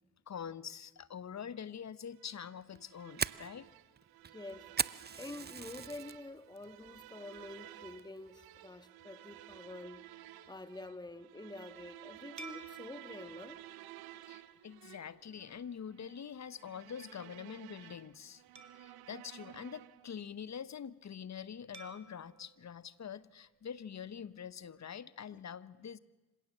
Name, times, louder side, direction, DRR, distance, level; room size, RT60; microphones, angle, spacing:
voice 1, 0.3-3.7 14.2-18.4 18.8-26.0, left 8 dB, 50° left, 1.0 m, -45 dB
sound 1, 2.2-20.2, right 14 dB, 90° right, 0.8 m, -54 dB
Fire, 2.6-6.2 6.6-7.0 7.3-7.5 8.0-8.3, right 6 dB, 30° right, 0.7 m, -38 dB
voice 2, 4.3-10.1 10.5-13.9 25.3-25.4, left 2 dB, 10° left, 1.5 m, -48 dB
sound 2, 12.4-15.1 15.6-15.8 18.6-20.3 21.7-24.0, right 3 dB, 50° right, 2.4 m, -56 dB
26.5 x 17.0 x 7.5 m
supercardioid pair, 50°, 36 cm